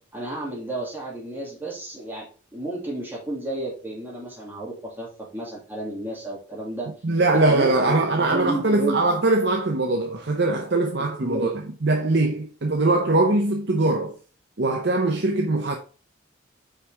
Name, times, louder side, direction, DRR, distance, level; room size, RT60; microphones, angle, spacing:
voice 1, 0.1-2.3 2.5-6.9 7.3-9.0 11.2-11.5, right 2 dB, 10° right, 2.4 m, -32 dB
voice 2, 7.0-11.5 11.8-14.1 14.6-15.8, right 2 dB, 60° right, 0.8 m, -21 dB
5.7 x 5.0 x 3.4 m
head